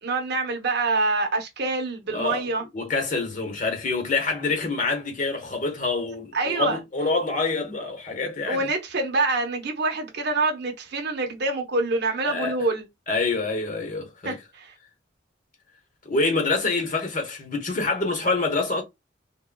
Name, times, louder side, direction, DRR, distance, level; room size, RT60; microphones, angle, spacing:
voice 1, 0.0-2.6 6.3-6.8 8.5-12.9 14.2-14.7, right 3 dB, 55° right, 0.8 m, -26 dB
voice 2, 2.1-2.5 2.7-8.7 12.2-12.6 13.1-14.3 16.0-18.8, left 3 dB, 40° left, 0.9 m, -26 dB
3.6 x 2.1 x 2.2 m
head